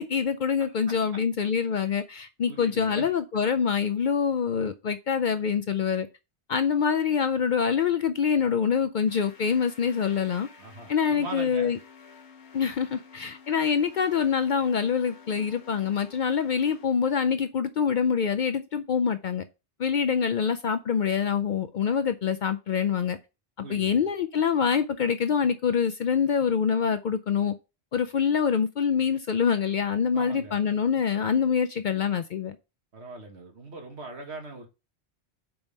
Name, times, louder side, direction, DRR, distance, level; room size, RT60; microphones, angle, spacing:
voice 1, 0.0-6.1 6.5-10.5 10.9-11.8 12.5-19.4 19.8-23.2 23.7-27.5 27.9-32.6, left 7 dB, 55° left, 0.6 m, -25 dB
voice 2, 0.7-1.2 2.5-3.1 10.6-11.7 23.6-24.1 30.1-30.6 32.9-34.7, right 3 dB, 75° right, 1.8 m, -41 dB
sound 1, 9.1-16.9, left 5 dB, 75° left, 1.4 m, -51 dB
5.2 x 4.6 x 5.3 m
omnidirectional pair, 1.1 m